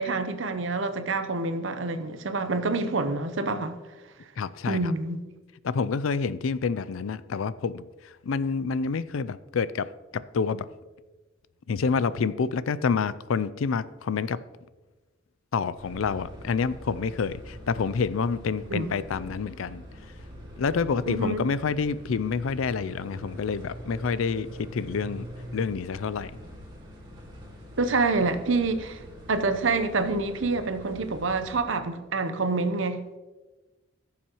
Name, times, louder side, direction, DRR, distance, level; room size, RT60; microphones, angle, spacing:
voice 1, 0.0-3.8 4.7-5.2 18.7-18.9 21.1-21.4 27.8-29.0 29.3-33.0, right 3 dB, 70° right, 0.8 m, -27 dB
voice 2, 4.4-4.9 5.6-10.7 11.7-14.4 15.5-19.8 20.6-25.2 25.5-26.3, left 5 dB, 85° left, 0.4 m, -28 dB
sound 1, 15.7-31.6, equal, 25° right, 2.0 m, -44 dB
16.5 x 7.2 x 3.0 m
head